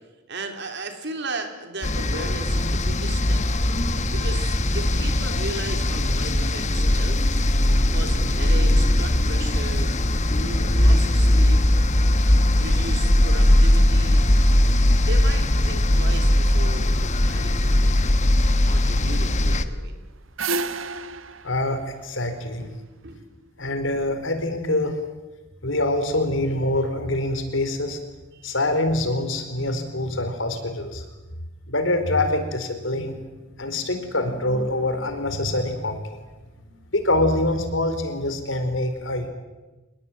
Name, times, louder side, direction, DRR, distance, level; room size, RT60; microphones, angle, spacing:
voice 1, 0.3-3.4 4.1-7.2 7.9-9.9 10.2-11.6 12.5-14.4 15.1-17.9 18.6-20.0 22.6-23.5 28.3-28.6, right 2 dB, 60° right, 6 dB, 4.0 m, -36 dB
sound 1, 1.8-19.6, left 1 dB, 35° left, 1.4 m, -19 dB
sound 2, 19.9-23.0, right 3 dB, 85° right, 1.4 m, -31 dB
voice 2, 21.4-22.6 23.6-25.0 25.6-28.0 28.4-31.0 31.7-33.1 33.6-36.2 36.7-39.3, left 1 dB, 75° left, 8 dB, 4.5 m, -25 dB
27.0 x 20.5 x 9.2 m, 1.1 s
head